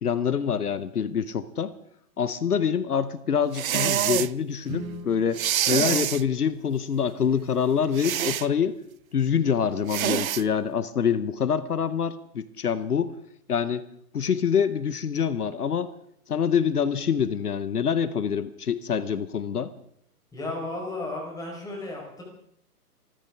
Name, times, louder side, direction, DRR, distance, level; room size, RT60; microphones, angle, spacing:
voice 1, 0.0-1.7 2.2-8.8 9.1-13.1 13.5-13.8 14.1-15.9 16.3-19.7, left 7 dB, 75° left, 16 dB, 1.0 m, -25 dB
sound 1, 3.5-4.3 5.3-6.2 8.0-8.5 9.9-10.4, right 11 dB, 65° right, 0.5 m, -26 dB
Guitar, 4.6-7.2, right 3 dB, 35° right, 6.8 m, -42 dB
voice 2, 20.3-22.2, left 2 dB, 10° left, -1 dB, 4.7 m, -34 dB
27.0 x 13.5 x 3.6 m, 0.69 s
figure-of-eight pair, 130°, 46 cm